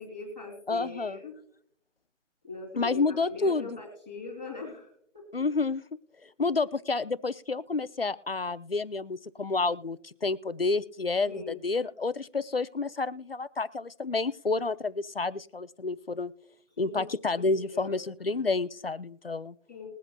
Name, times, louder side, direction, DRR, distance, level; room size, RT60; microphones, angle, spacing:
voice 1, 0.0-1.3 2.4-4.9 5.1-5.2 11.3-11.6 16.8-17.0 17.3-18.1 19.7-19.9, left 3 dB, 5° right, -6 dB, 2.1 m, -40 dB
voice 2, 0.7-1.2 2.8-3.8 5.3-5.8 6.2-16.3 16.8-19.5, left 3 dB, 50° left, 13 dB, 0.6 m, -29 dB
21.0 x 8.0 x 2.2 m, 0.71 s
figure-of-eight pair, 175°, 38 cm